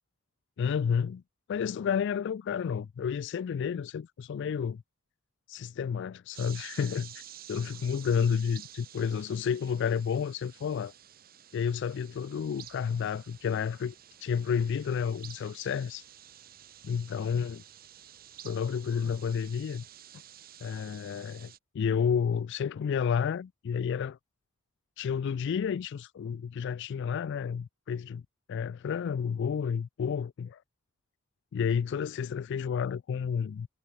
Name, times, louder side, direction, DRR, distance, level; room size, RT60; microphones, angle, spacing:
voice 1, 0.6-1.2 1.5-4.8 5.5-7.2 7.5-10.9 11.5-13.9 14.2-16.0 16.8-17.6 18.4-19.8 20.6-24.2 25.0-28.2 28.5-30.6 31.5-33.7, left 7 dB, 60° left, 0.3 m, -31 dB
sound 1, 6.3-21.6, right 11 dB, 45° right, 1.3 m, -51 dB
sound 2, 12.4-19.6, equal, 10° right, 5.8 m, -70 dB
head